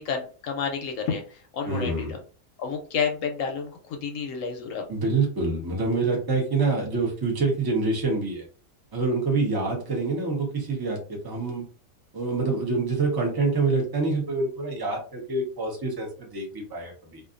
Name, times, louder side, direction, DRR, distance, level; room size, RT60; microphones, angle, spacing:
voice 1, 0.0-2.2 2.6-4.8, left 6 dB, 70° left, 3 dB, 0.9 m, -30 dB
voice 2, 1.7-2.1 4.9-8.4 8.9-11.6 12.1-17.2, right 3 dB, 20° right, 0 dB, 0.6 m, -26 dB
2.5 x 2.4 x 2.4 m, 0.38 s
omnidirectional pair, 1.5 m